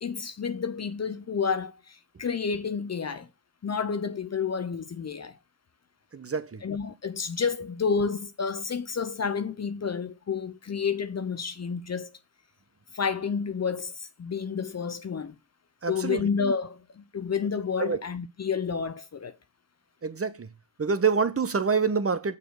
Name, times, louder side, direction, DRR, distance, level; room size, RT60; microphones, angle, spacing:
voice 1, 0.0-3.3 3.6-5.4 6.6-12.1 12.9-15.4 15.9-19.4, left 6 dB, 35° left, 0.7 m, -30 dB
voice 2, 6.1-6.6 15.8-16.2 17.8-18.0 20.0-20.5 20.8-22.4, right 5 dB, 30° right, 1.0 m, -26 dB
6.8 x 4.1 x 6.4 m
hypercardioid pair, 45°, 48 cm